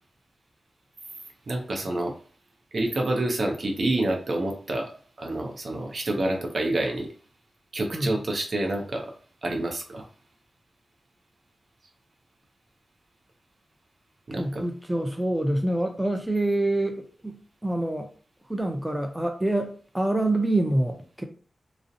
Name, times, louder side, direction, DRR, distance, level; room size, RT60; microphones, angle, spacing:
voice 1, 1.5-2.2 2.7-4.9 5.2-7.1 7.7-9.1 9.4-10.0 14.3-14.6, right 2 dB, 65° right, 2 dB, 0.6 m, -28 dB
voice 2, 14.3-18.1 18.5-21.2, right 1 dB, 10° right, 4 dB, 0.5 m, -26 dB
2.4 x 2.0 x 2.6 m, 0.42 s
cardioid pair, 40°, 0 cm